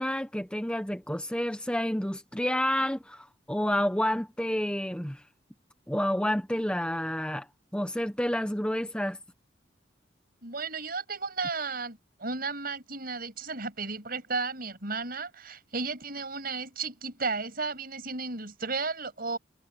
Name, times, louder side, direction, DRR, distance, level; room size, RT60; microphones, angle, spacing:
voice 1, 0.0-5.2 5.9-7.5 7.7-9.2, equal, 5° left, 1.2 m, -29 dB
voice 2, 10.4-19.4, right 4 dB, 55° right, 7.2 m, -34 dB
head